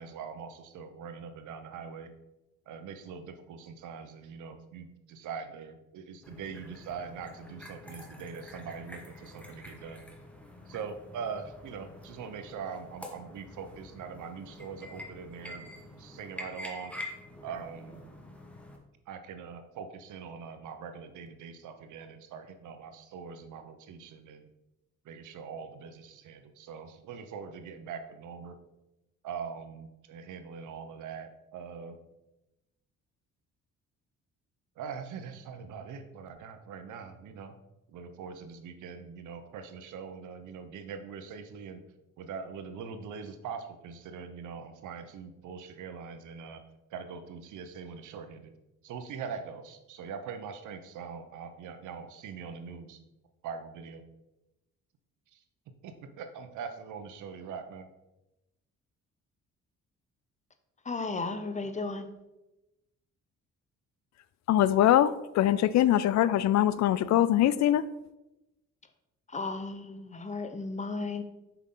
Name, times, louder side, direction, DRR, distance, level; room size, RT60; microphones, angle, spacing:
voice 1, 0.0-2.1 2.7-10.0 10.7-15.7 16.0-16.9 17.4-18.0 19.1-24.5 25.0-28.6 29.2-32.0 34.8-37.6 37.9-41.8 42.2-46.6 46.9-48.5 48.8-53.0 53.4-54.0 55.3-55.4 55.8-57.9, right 6 dB, 80° right, 0.9 m, -42 dB
sound 1, 6.2-18.8, left 1 dB, 5° left, 1.4 m, -47 dB
voice 2, 60.8-62.1 69.3-71.2, left 3 dB, 25° left, 0.8 m, -34 dB
voice 3, 64.5-67.8, left 12 dB, 65° left, 0.4 m, -23 dB
7.3 x 5.8 x 3.9 m
cardioid pair, 90°, 30 cm